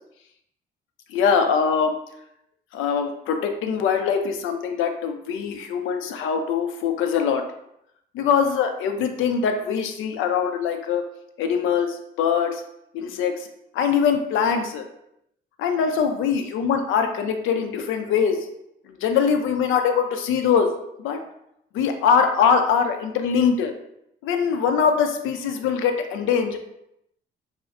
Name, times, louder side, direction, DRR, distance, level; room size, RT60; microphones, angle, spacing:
voice 1, 1.1-1.9 2.7-7.4 8.1-11.0 11.4-12.6 12.9-13.5 13.7-14.9 15.6-18.5 19.0-20.7 21.0-21.2 21.7-23.7 24.2-26.6, left 6 dB, 85° left, 6 dB, 0.4 m, -22 dB
2.3 x 2.1 x 3.5 m, 0.80 s
cardioid pair, 90°, 20 cm